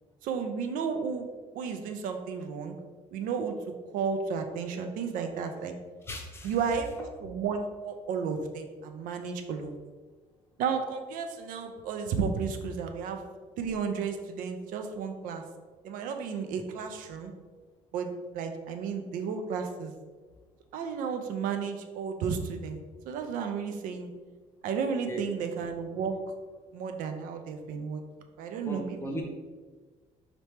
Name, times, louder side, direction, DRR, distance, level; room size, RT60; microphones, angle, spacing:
voice 1, 0.2-1.3 1.5-2.8 3.1-3.6 3.9-5.8 6.4-9.7 10.6-13.2 13.6-15.4 15.8-17.3 17.9-19.9 20.7-22.8 23.1-24.1 24.6-26.2 26.7-28.0 28.4-29.2, right 6 dB, 85° right, 6 dB, 0.5 m, -33 dB
voice 2, 6.1-6.6 25.1-25.2 28.7-29.2, equal, 20° left, 0 dB, 0.6 m, -37 dB
4.3 x 3.0 x 3.3 m, 1.4 s
cardioid pair, 165°, 14 cm